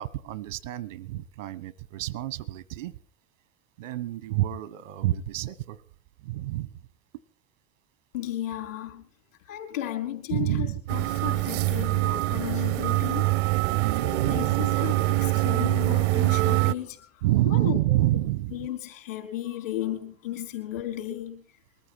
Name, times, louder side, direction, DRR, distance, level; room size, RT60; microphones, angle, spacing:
voice 1, 0.0-3.0 3.8-5.8 6.2-6.9 10.3-10.8 12.9-13.0 13.6-14.6 17.2-18.7, right 15 dB, 80° right, 1.1 m, -28 dB
voice 2, 8.1-9.1 9.4-13.3 14.0-17.2 17.5-18.0 18.5-21.4, left 12 dB, 80° left, 4.2 m, -34 dB
sound 1, 10.9-16.7, right 20 dB, 65° right, 0.7 m, -24 dB
22.0 x 13.5 x 4.6 m
hypercardioid pair, 65°, 38 cm